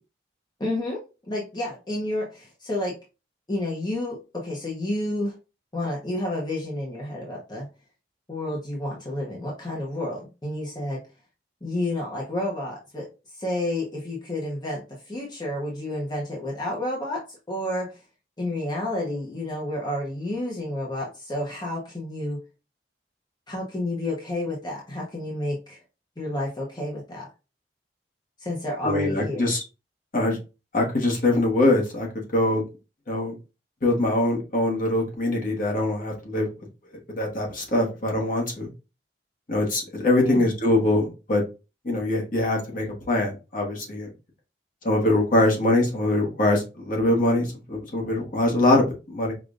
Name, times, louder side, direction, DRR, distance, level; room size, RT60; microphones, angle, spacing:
voice 1, 0.6-1.0 1.3-3.0 3.5-5.4 5.7-7.7 8.3-11.1 11.6-18.0 18.4-22.5 23.5-25.8 26.2-27.3 28.4-29.5 40.2-40.5, left 1 dB, 25° left, -3 dB, 0.8 m, -30 dB
voice 2, 28.8-29.6 30.1-30.4 30.7-32.1 32.3-32.6 33.1-33.3 33.8-36.5 37.2-38.7 39.5-41.4 41.8-44.1 44.8-49.3, left 1 dB, 50° left, 0 dB, 1.2 m, -23 dB
5.0 x 2.5 x 2.5 m, 0.30 s
head